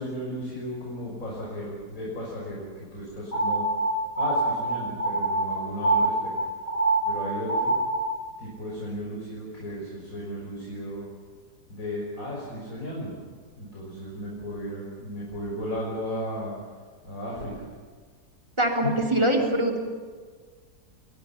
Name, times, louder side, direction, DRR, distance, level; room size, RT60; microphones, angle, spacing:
voice 1, 0.0-3.6 4.2-6.3 7.0-7.8 8.4-11.1 11.7-13.2 13.5-16.8 17.0-17.5 18.8-18.9, equal, 50° left, -5 dB, 6.3 m, -35 dB
sound 1, 3.3-8.2, right 2 dB, 80° left, 2.7 m, -25 dB
voice 2, 18.6-19.8, right 1 dB, 15° right, 1 dB, 3.3 m, -23 dB
29.5 x 24.0 x 5.8 m, 1.5 s
omnidirectional pair, 1.8 m